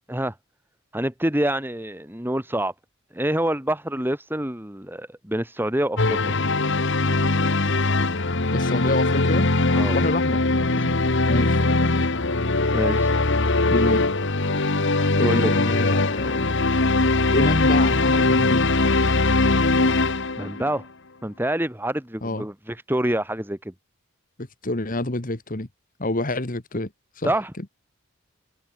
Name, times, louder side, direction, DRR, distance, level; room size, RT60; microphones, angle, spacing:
voice 1, 0.9-2.7 3.1-6.4 9.8-10.0 10.8-11.0 12.7-13.1 15.2-15.6 18.4-18.5 20.4-20.9 21.2-23.7 27.2-27.5, right 1 dB, 10° right, 1.9 m, -26 dB
sound 1, 6.0-20.7, left 2 dB, 55° left, 1.6 m, -21 dB
voice 2, 8.5-9.5 9.9-10.4 11.3-11.6 13.7-14.0 15.2-16.5 17.3-18.7 22.2-22.5 24.6-25.7 26.0-26.9 27.2-27.3, left 2 dB, 40° left, 1.7 m, -26 dB
head